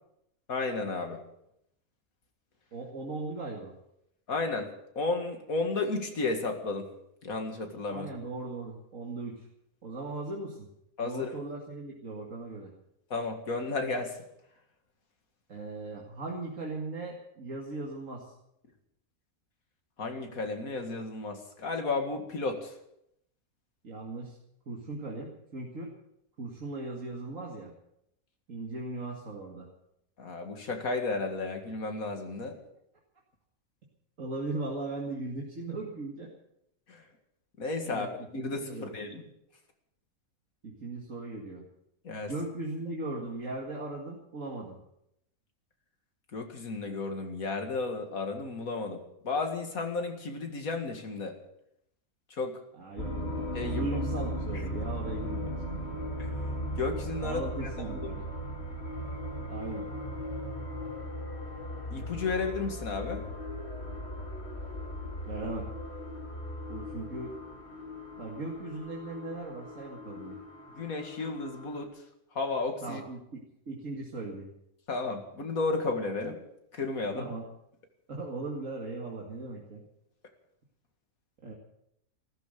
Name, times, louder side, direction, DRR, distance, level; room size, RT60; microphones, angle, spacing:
voice 1, 0.5-1.2 4.3-4.7 5.0-6.9 7.2-8.1 11.0-11.3 13.1-14.2 20.0-22.7 30.2-32.6 36.9-37.0 37.6-39.3 42.0-42.3 46.3-51.4 52.3-52.6 53.5-54.0 56.2-56.3 56.8-57.5 57.9-58.0 61.9-63.2 70.8-72.0 72.3-73.0 74.9-76.4 76.7-77.3, left 3 dB, 75° left, 5 dB, 2.4 m, -33 dB
voice 2, 2.7-3.7 7.9-9.5 9.8-10.7 11.0-12.7 15.5-18.3 23.8-24.4 24.7-25.9 26.4-27.7 28.5-29.7 34.2-36.3 37.9-38.9 40.6-41.6 42.1-44.8 52.7-55.5 57.2-58.3 59.5-59.9 65.3-65.7 66.7-67.4 68.2-70.4 72.8-74.5 77.1-77.4 78.1-79.8 81.4-81.5, right 2 dB, 60° right, -2 dB, 2.5 m, -38 dB
sound 1, 53.0-71.8, equal, 45° left, 2.7 m, -37 dB
15.5 x 13.5 x 6.7 m, 0.78 s
omnidirectional pair, 1.5 m